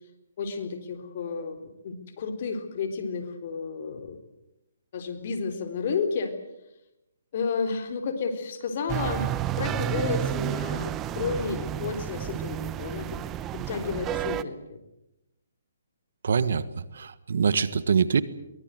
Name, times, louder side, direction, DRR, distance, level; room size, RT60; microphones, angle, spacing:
voice 1, 0.4-4.2 4.9-6.3 7.3-13.2 13.5-14.8, left 5 dB, 50° left, 7 dB, 4.0 m, -32 dB
sound 1, 8.9-14.4, right 12 dB, 20° right, 0.9 m, -31 dB
voice 2, 16.2-18.2, right 6 dB, 70° right, 15 dB, 1.5 m, -24 dB
23.0 x 21.0 x 7.9 m, 0.89 s
hypercardioid pair, 150°, 0 cm